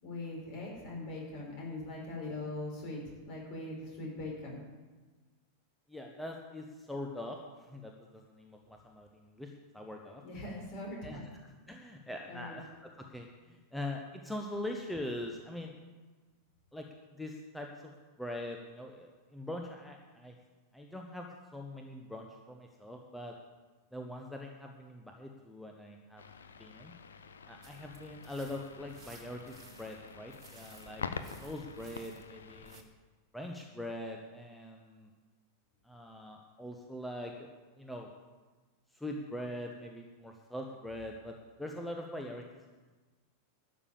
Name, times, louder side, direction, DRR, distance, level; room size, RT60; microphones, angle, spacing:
voice 1, 0.0-4.6 10.2-11.2 12.3-12.6, left 2 dB, 45° left, -1 dB, 5.2 m, -41 dB
voice 2, 5.9-10.2 11.0-15.8 16.7-16.9 17.1-17.9 18.2-20.4 20.7-23.4 23.9-26.2 26.6-26.9 27.5-32.9 33.3-35.1 35.8-37.5 37.8-38.1 38.9-42.4, left 1 dB, 5° left, 1 dB, 1.1 m, -43 dB
sound 1, 26.2-32.8, left 6 dB, 70° left, 0.7 m, -46 dB
sound 2, 27.6-32.8, right 5 dB, 30° right, 1.7 m, -58 dB
12.5 x 6.8 x 8.6 m, 1.3 s
figure-of-eight pair, 90°, 0 cm